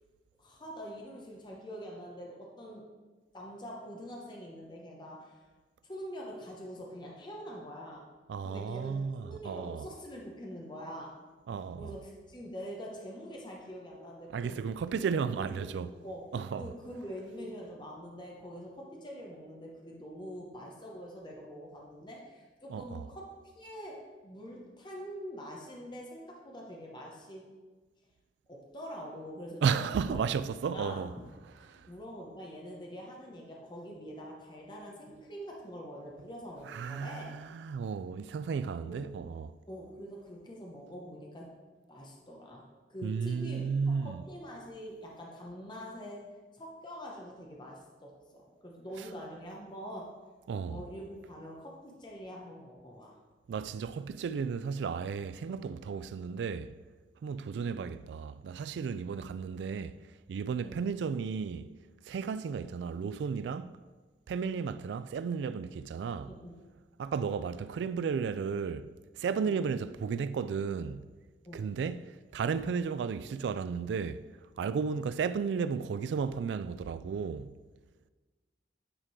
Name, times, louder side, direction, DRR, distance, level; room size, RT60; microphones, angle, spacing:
voice 1, 0.4-2.9 3.3-5.4 5.8-8.1 8.4-11.2 11.8-14.6 15.1-27.5 28.5-30.2 30.7-31.2 31.5-37.3 38.9-39.1 39.7-41.6 41.9-50.1 50.7-53.2 60.6-60.9 66.3-66.5 69.4-69.7 71.4-71.7, equal, 25° left, 0.9 m, -45 dB
voice 2, 8.3-9.9 11.5-12.0 14.3-15.9 16.3-16.7 22.7-23.1 29.6-31.1 31.7-31.9 36.7-39.6 43.0-44.2 50.5-50.8 53.5-56.7 57.2-60.0 60.3-61.7 62.1-63.7 64.3-66.3 67.0-68.9 69.2-71.1 71.5-74.2 74.6-77.6, right 6 dB, 80° right, 0.3 m, -34 dB
8.9 x 3.7 x 4.7 m
head